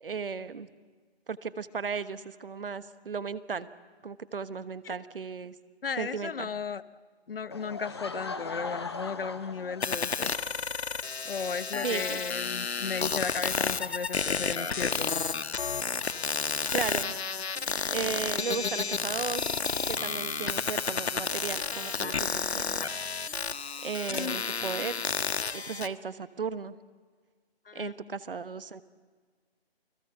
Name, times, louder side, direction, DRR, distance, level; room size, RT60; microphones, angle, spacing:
voice 1, 0.0-0.7 1.3-3.7 4.0-5.5 6.0-6.5 11.8-12.2 16.7-17.1 17.9-19.5 19.9-23.0 23.8-25.0 25.5-26.7 27.7-28.8, right 5 dB, 60° right, 13 dB, 1.2 m, -35 dB
voice 2, 5.8-6.8 7.3-10.3 11.2-15.2 24.0-24.4 27.7-27.9, left 5 dB, 60° left, 16 dB, 0.9 m, -35 dB
Laughter / Crowd, 7.5-10.3, left 4 dB, 25° left, 0.9 m, -39 dB
sound 1, 9.8-25.9, left 5 dB, 90° left, 1.3 m, -31 dB
29.0 x 20.0 x 7.9 m, 1.5 s
hypercardioid pair, 175°, 32 cm